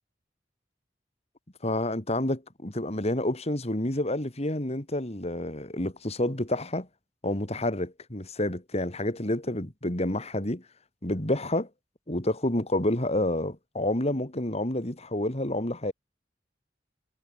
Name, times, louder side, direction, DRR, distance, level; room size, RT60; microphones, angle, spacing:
voice 1, 1.6-6.9 7.2-10.6 11.0-11.7 12.1-15.9, left 1 dB, 35° left, 3.3 m, -29 dB
head